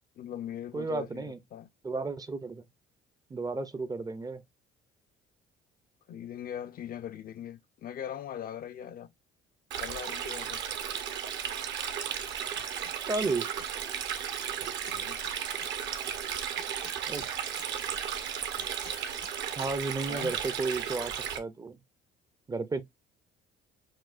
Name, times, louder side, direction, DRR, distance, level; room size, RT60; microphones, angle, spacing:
voice 1, 0.2-1.7 6.1-9.1 9.8-10.6 14.9-15.2 20.1-20.3, left 10 dB, 45° left, 0.4 m, -40 dB
voice 2, 0.7-1.4 1.8-2.7 3.3-4.4 13.1-13.5 17.1-17.2 19.6-21.8 22.5-22.8, right 3 dB, 20° right, 0.5 m, -33 dB
Stream, 9.7-21.4, right 8 dB, 65° right, 0.8 m, -35 dB
sound 1, 12.5-13.0 13.2-13.7 14.6-15.7 16.6-17.7 18.6-19.3 19.6-19.7, left 7 dB, 80° left, 1.1 m, -52 dB
6.1 x 2.2 x 2.4 m
supercardioid pair, 90°, 20 cm